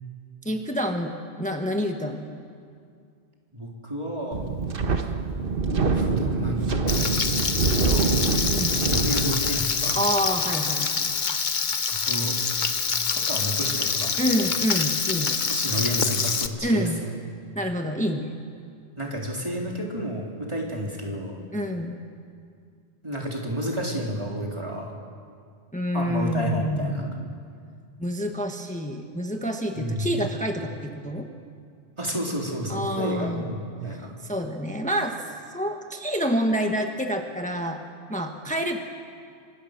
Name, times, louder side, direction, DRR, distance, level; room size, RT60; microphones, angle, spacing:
voice 1, 0.4-2.4 8.5-8.8 9.9-11.1 14.2-15.4 16.6-17.0 17.5-18.3 21.5-22.0 25.7-27.3 28.0-31.3 32.7-33.5 34.2-35.2 35.5-37.8 38.1-38.8, equal, 5° left, 3 dB, 1.4 m, -27 dB
voice 2, 3.5-4.4 5.7-7.2 7.5-8.2 8.9-10.0 11.9-12.4 13.1-14.1 15.4-17.1 19.0-21.4 23.0-24.9 25.9-27.1 29.8-30.1 32.0-34.1, right 1 dB, 30° right, -2 dB, 3.6 m, -31 dB
Wind, 4.3-9.9, right 4 dB, 60° right, 1.4 m, -25 dB
Frying (food), 6.9-16.5, left 5 dB, 50° left, 1.0 m, -26 dB
25.5 x 25.5 x 6.6 m, 2.3 s
omnidirectional pair, 1.1 m